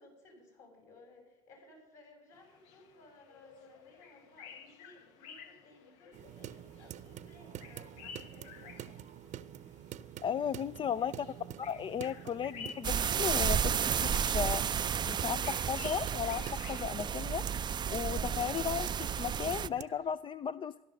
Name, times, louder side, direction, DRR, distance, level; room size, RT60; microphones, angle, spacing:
voice 1, 0.0-8.8 10.8-11.4, left 2 dB, 60° left, 2 dB, 6.8 m, -59 dB
sound 1, 2.3-20.1, left 6 dB, 80° left, 1.1 m, -54 dB
sound 2, 6.1-19.8, right 11 dB, 55° right, 0.8 m, -47 dB
voice 2, 10.2-11.1 11.6-13.7 14.0-14.6 15.1-17.4 17.9-20.7, left 8 dB, 35° left, 16 dB, 0.4 m, -35 dB
sound 3, 12.8-19.7, right 8 dB, 30° right, 0.4 m, -32 dB
15.0 x 11.5 x 6.5 m, 0.98 s
supercardioid pair, 80°, 15 cm